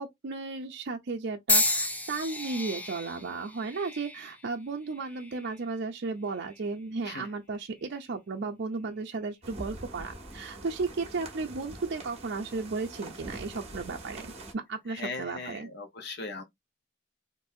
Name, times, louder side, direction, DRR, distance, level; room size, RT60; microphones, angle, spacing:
voice 1, 0.0-15.7, right 4 dB, 60° right, 0.5 m, -34 dB
sound 1, 1.5-5.6 6.3-6.8 7.7-7.9, left 2 dB, 10° left, 0.4 m, -32 dB
sound 2, 9.4-14.5, right 2 dB, 35° right, 1.3 m, -44 dB
voice 2, 14.9-16.4, left 3 dB, 60° left, 0.9 m, -39 dB
3.9 x 2.6 x 2.7 m
head